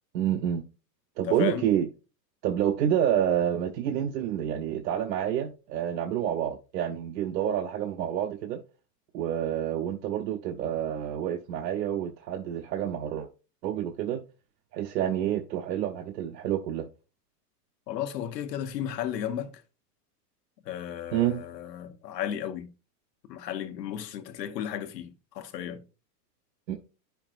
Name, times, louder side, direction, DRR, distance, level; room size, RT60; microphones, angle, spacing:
voice 1, 0.1-0.6 1.2-1.9 2.4-8.6 9.1-13.3 13.6-14.2 14.7-16.9 21.1-21.4 26.7-26.8, right 10 dB, 85° right, 0.9 m, -28 dB
voice 2, 1.2-1.7 17.9-19.5 20.6-22.7 23.3-25.8, left 10 dB, 80° left, 1.1 m, -34 dB
8.9 x 5.7 x 2.4 m
supercardioid pair, 165°, 49 cm